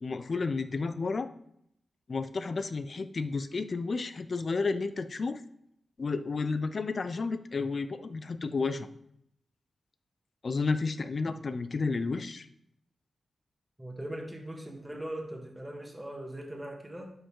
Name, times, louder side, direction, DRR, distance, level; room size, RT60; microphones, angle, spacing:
voice 1, 0.0-1.3 2.1-5.4 6.0-8.9 10.4-12.5, left 4 dB, 55° left, 12 dB, 0.5 m, -31 dB
voice 2, 13.8-17.1, right 1 dB, 10° right, 1 dB, 1.8 m, -40 dB
11.0 x 5.2 x 3.8 m, 0.73 s
cardioid pair, 70°, 0 cm